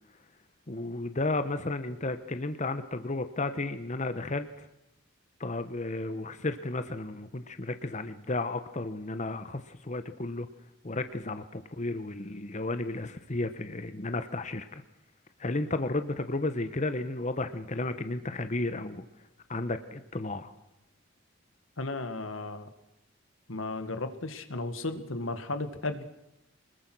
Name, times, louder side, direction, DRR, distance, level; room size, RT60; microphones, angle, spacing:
voice 1, 0.7-4.7 5.4-10.5 10.8-14.8 15.4-19.0 19.5-20.5, left 2 dB, 35° left, 10 dB, 1.1 m, -33 dB
voice 2, 21.8-22.7 23.5-26.0, left 2 dB, 85° left, 9 dB, 1.9 m, -34 dB
25.0 x 21.0 x 6.2 m, 0.88 s
head